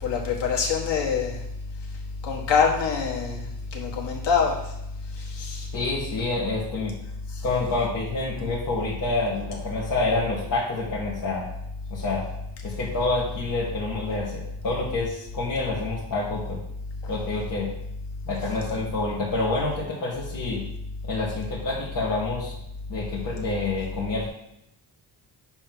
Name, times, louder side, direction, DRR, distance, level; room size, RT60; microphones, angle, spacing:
voice 1, 0.0-1.4 2.2-3.4 3.7-4.5 5.4-5.7, left 6 dB, 85° left, -1 dB, 1.7 m, -24 dB
voice 2, 5.7-6.9 7.4-11.4 11.9-12.2 12.6-16.6 17.1-17.7 18.2-20.6 21.1-22.5 22.9-24.3, left 3 dB, 50° left, -7 dB, 1.6 m, -28 dB
7.5 x 3.3 x 6.1 m, 0.81 s
cardioid pair, 180°, 41 cm